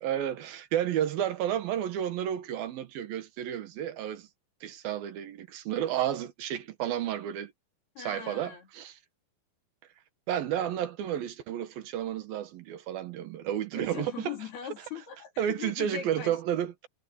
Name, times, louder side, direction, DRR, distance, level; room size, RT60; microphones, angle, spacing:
voice 1, 0.0-4.3 4.6-7.5 8.0-9.0 10.3-14.3 15.4-16.9, right 10 dB, 75° right, 3.1 m, -31 dB
voice 2, 8.0-8.7 13.7-16.6, left 9 dB, 85° left, 6.0 m, -40 dB
omnidirectional pair, 4.4 m